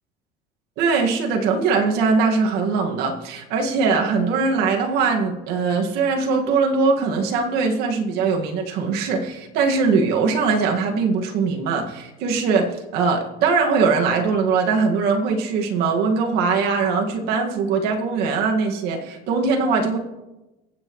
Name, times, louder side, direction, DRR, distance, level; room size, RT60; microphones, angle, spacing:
voice 1, 0.8-20.0, right 4 dB, 60° right, 2 dB, 2.0 m, -21 dB
23.5 x 8.3 x 3.2 m, 1.0 s
cardioid pair, 140°, 18 cm